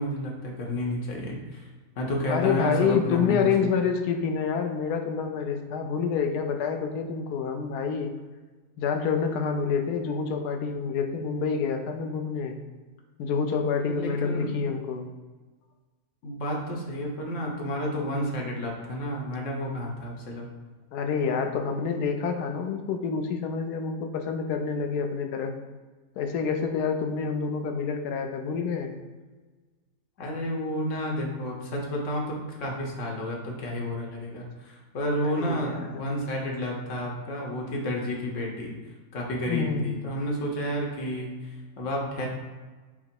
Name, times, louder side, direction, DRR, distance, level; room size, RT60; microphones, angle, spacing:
voice 1, 0.0-1.7 1.9-3.5 13.8-14.5 16.2-20.5 30.2-38.7 39.1-42.3, equal, 55° left, -1 dB, 1.1 m, -31 dB
voice 2, 2.3-8.1 8.8-12.6 13.2-15.1 20.9-25.5 26.2-28.9 35.2-36.1 39.5-39.9, left 6 dB, 75° left, 5 dB, 1.1 m, -27 dB
5.8 x 2.0 x 4.5 m, 1.3 s
omnidirectional pair, 1.7 m